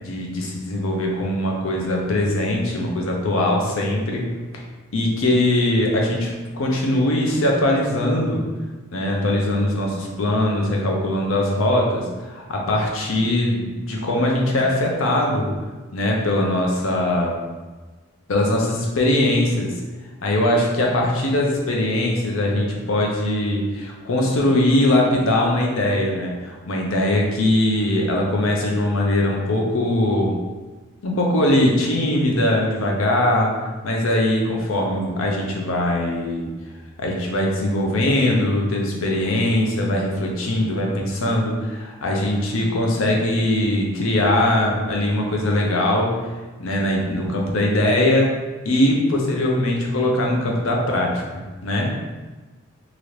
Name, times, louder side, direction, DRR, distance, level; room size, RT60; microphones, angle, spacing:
voice 1, 0.0-4.3 4.9-8.4 8.9-15.5 15.9-17.4 18.3-19.7 20.2-30.4 31.0-33.5 33.8-36.5 37.0-46.2 46.6-48.3 48.6-51.9, left 1 dB, 70° left, -1 dB, 0.6 m, -21 dB
3.0 x 2.5 x 3.2 m, 1.3 s
head